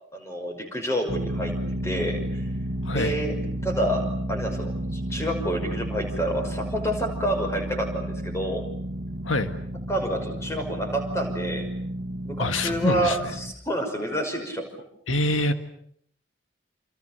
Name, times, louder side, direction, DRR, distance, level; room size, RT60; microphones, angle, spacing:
voice 1, 0.1-1.5 1.8-2.5 2.9-3.3 3.6-8.6 9.9-11.7 12.2-14.7, right 1 dB, 15° left, 5 dB, 5.7 m, -28 dB
sound 1, 1.1-13.5, right 1 dB, 55° right, 2.0 m, -32 dB
voice 2, 2.8-3.2 9.2-9.5 12.4-13.3 15.1-15.5, left 2 dB, 85° left, 8 dB, 1.8 m, -25 dB
29.0 x 28.5 x 6.8 m, 0.67 s
head